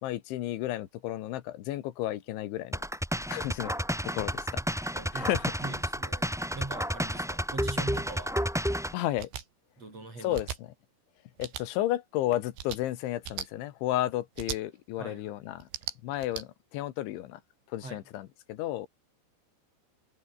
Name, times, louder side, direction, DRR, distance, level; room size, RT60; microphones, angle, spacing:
voice 1, 0.0-2.8 3.3-3.7 4.1-4.5 4.8-5.5 8.9-9.3 10.2-10.5 11.4-15.7 16.0-17.4 17.7-18.9, left 14 dB, 85° left, 3.7 m, -32 dB
sound 1, 2.7-8.9, equal, 5° right, 0.6 m, -31 dB
voice 2, 4.1-4.7 4.9-5.3 5.6-8.4 9.8-10.4 15.0-15.4 17.8-18.0, right 3 dB, 35° right, 8.7 m, -42 dB
sound 2, 9.2-9.4 10.3-10.6 11.4-11.6 12.5-12.8 13.2-13.5 14.4-14.6 15.6-16.4, right 9 dB, 70° right, 5.0 m, -37 dB
omnidirectional pair, 5.3 m